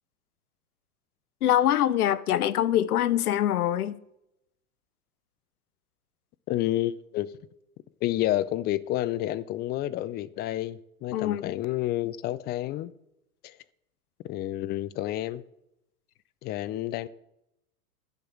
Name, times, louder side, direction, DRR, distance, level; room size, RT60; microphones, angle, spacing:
voice 1, 1.4-4.0 11.1-11.5, left 11 dB, 75° left, 0.8 m, -24 dB
voice 2, 6.5-7.3 8.0-12.9 13.4-13.6 14.2-15.4 16.4-17.1, left 14 dB, 25° left, 0.4 m, -29 dB
10.5 x 5.6 x 8.5 m
hypercardioid pair, 100°, 45 cm